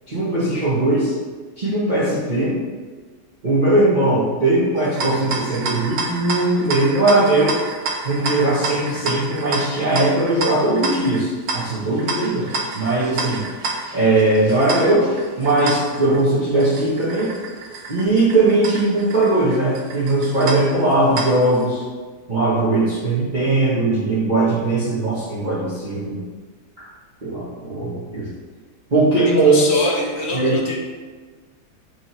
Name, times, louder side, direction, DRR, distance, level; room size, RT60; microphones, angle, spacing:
voice 1, 0.1-1.1 1.6-2.5 3.4-7.5 8.0-12.5 12.7-13.4 13.9-15.0 15.4-17.3 17.9-21.8 22.3-26.2 27.2-28.3 28.9-29.7 30.3-30.6, right 2 dB, 30° right, -10 dB, 1.2 m, -19 dB
sound 1, 4.8-21.6, right 3 dB, 70° right, 1.2 m, -30 dB
voice 2, 29.2-30.8, left 1 dB, 45° left, -2 dB, 1.1 m, -25 dB
6.1 x 3.5 x 4.4 m, 1.4 s
omnidirectional pair, 1.8 m